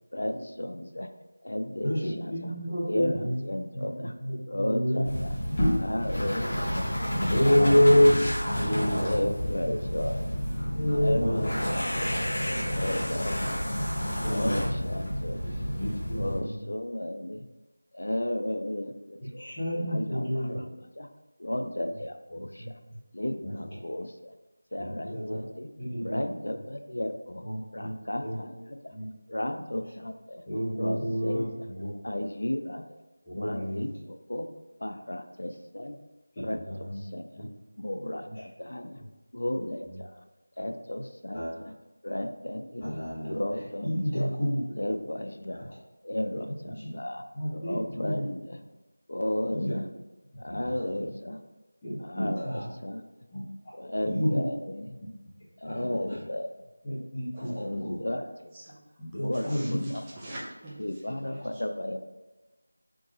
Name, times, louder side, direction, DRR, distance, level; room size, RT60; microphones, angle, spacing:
voice 1, 0.1-1.1 1.4-2.5 2.8-4.1 4.5-5.3 5.8-6.9 7.4-8.0 8.9-10.3 10.9-12.2 12.7-13.7 14.3-15.4 16.1-17.5 17.9-19.5 19.9-21.1 21.4-22.7 23.1-24.3 24.7-25.7 26.0-27.4 27.7-28.9 29.3-30.4 30.8-31.5 32.0-33.0 33.4-34.5 34.8-36.0 36.4-36.6 36.9-37.5 37.8-39.0 39.3-40.2 40.6-41.7 42.0-43.0 43.3-44.3 44.7-45.7 46.0-47.2 47.5-48.6 49.1-49.9 50.4-51.4 52.0-53.0 53.7-55.0 55.6-56.6 57.3-58.5 59.2-60.0 60.8-62.0, left 1 dB, 70° left, 6 dB, 0.5 m, -34 dB
voice 2, 1.8-3.4 3.7-5.1 5.5-5.8 7.3-8.1 8.5-9.2 10.7-11.5 13.6-14.8 15.3-15.5 15.8-16.7 19.4-20.6 22.6-22.7 23.4-23.5 24.8-25.4 25.8-26.2 27.4-27.9 28.2-28.4 28.9-29.1 30.5-31.9 33.2-33.8 36.6-37.0 37.4-37.5 38.2-38.4 39.9-40.0 41.3-41.5 42.8-43.4 43.8-44.6 45.6-45.7 46.7-46.9 47.3-48.2 49.5-49.8 50.5-50.9 51.8-52.6 53.3-53.7 54.0-54.4 55.6-56.0 56.8-57.9 59.0-59.9, equal, 15° left, -19 dB, 1.2 m, -28 dB
sound 1, 5.0-16.4, equal, 30° left, 1.1 m, -30 dB
voice 3, 59.3-61.6, right 1 dB, 10° right, -8 dB, 0.6 m, -45 dB
3.7 x 2.9 x 3.7 m, 1.1 s
figure-of-eight pair, 175°, 0 cm